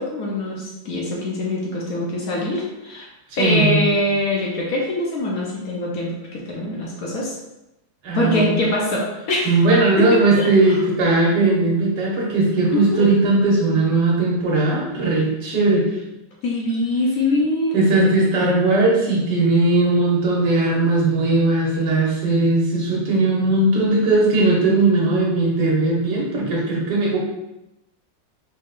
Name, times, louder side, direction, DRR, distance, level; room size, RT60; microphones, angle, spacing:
voice 1, 0.0-3.1 3.4-7.4 8.1-9.6 10.0-10.8 12.7-13.1 16.4-17.8, left 1 dB, 60° left, -3 dB, 1.2 m, -23 dB
voice 2, 3.3-3.8 8.0-8.6 9.4-15.8 17.7-27.2, right 2 dB, 70° right, -4 dB, 1.7 m, -18 dB
5.1 x 3.9 x 2.5 m, 0.93 s
omnidirectional pair, 1.9 m